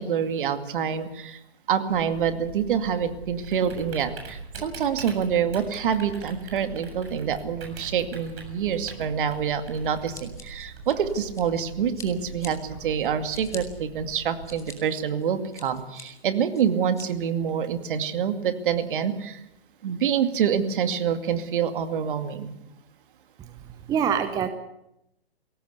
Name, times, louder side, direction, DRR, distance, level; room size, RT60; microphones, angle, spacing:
voice 1, 0.0-1.4 1.7-19.4 19.8-22.5, right 8 dB, 55° right, 8 dB, 2.4 m, -26 dB
Typing, 1.9-14.5, right 3 dB, 70° right, 7.4 m, -42 dB
Scissors, 10.1-11.6 11.9-12.5 13.0-13.6 14.1-14.7 15.2-16.0 16.5-17.0, left 6 dB, 10° left, 2.8 m, -44 dB
voice 2, 23.4-24.5, right 8 dB, 10° right, 9 dB, 0.8 m, -26 dB
21.5 x 17.5 x 8.3 m, 0.84 s
hypercardioid pair, 145°, 32 cm